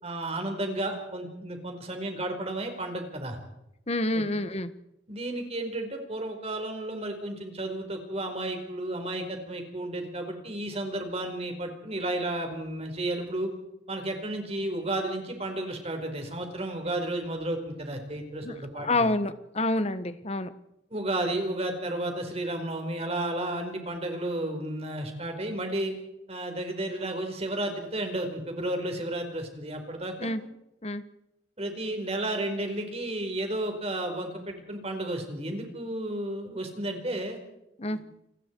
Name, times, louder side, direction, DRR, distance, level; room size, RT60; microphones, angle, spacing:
voice 1, 0.0-3.4 5.1-13.5 13.9-19.1 20.9-25.9 26.3-30.3 31.6-37.4 37.9-38.0, right 1 dB, 35° right, 4 dB, 4.8 m, -32 dB
voice 2, 3.9-4.7 18.4-20.5 30.2-30.4 30.8-31.0 37.8-38.0, left 2 dB, 35° left, 12 dB, 1.4 m, -28 dB
29.0 x 20.0 x 4.7 m, 0.86 s
head